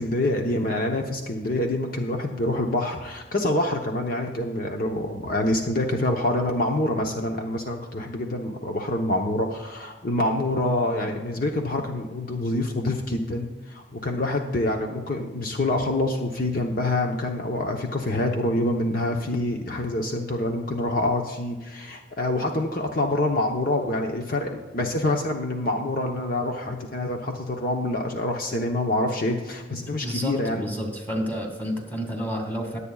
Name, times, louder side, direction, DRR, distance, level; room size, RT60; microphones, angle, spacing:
voice 1, 0.0-30.7, left 1 dB, 55° left, 3 dB, 0.9 m, -26 dB
voice 2, 30.0-32.8, equal, 10° left, 1 dB, 2.0 m, -30 dB
21.0 x 8.4 x 2.4 m, 1.2 s
head